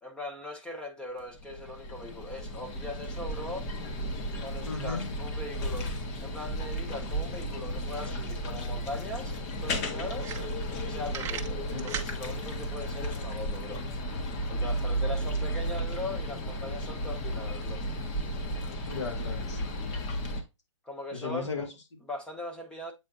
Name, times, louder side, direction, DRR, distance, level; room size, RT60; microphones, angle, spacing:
voice 1, 0.0-3.7 4.4-5.9 6.2-9.3 9.6-10.4 10.7-13.8 14.5-17.8 20.8-21.6 22.1-22.9, left 2 dB, 5° left, 1.2 m, -40 dB
sound 1, 1.2-20.4, equal, 30° left, 1.4 m, -34 dB
voice 2, 4.6-5.1 11.7-11.9 15.4-15.5 18.8-19.6 21.1-22.0, left 4 dB, 65° left, 2.7 m, -36 dB
sound 2, 10.1-10.8 11.1-12.1, right 8 dB, 15° right, 0.8 m, -36 dB
8.2 x 4.3 x 2.6 m
hypercardioid pair, 145°, 16 cm